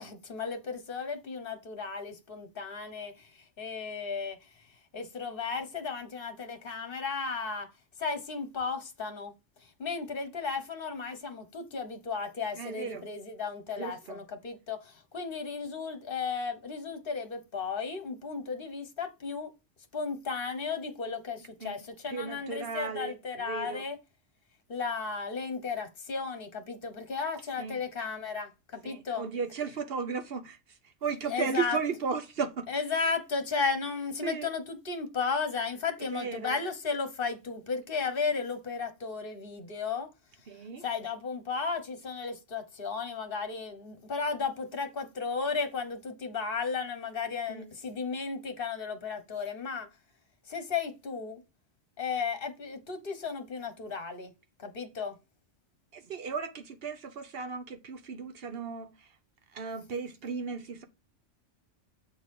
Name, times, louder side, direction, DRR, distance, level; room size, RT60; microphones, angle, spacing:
voice 1, 0.0-7.7 8.0-9.3 9.6-19.5 19.9-24.0 24.7-29.3 31.3-31.8 32.7-40.1 40.8-49.9 50.5-51.4 52.0-54.3 54.6-55.2, left 5 dB, 50° left, 1.4 m, -34 dB
voice 2, 12.6-13.0 13.8-14.2 21.6-21.8 22.1-23.9 27.6-27.8 28.8-32.7 34.2-34.5 36.1-36.6 40.5-40.8 47.5-47.7 55.9-59.1 59.5-60.9, right 5 dB, 55° right, 1.1 m, -35 dB
7.5 x 4.0 x 4.8 m
omnidirectional pair, 1.2 m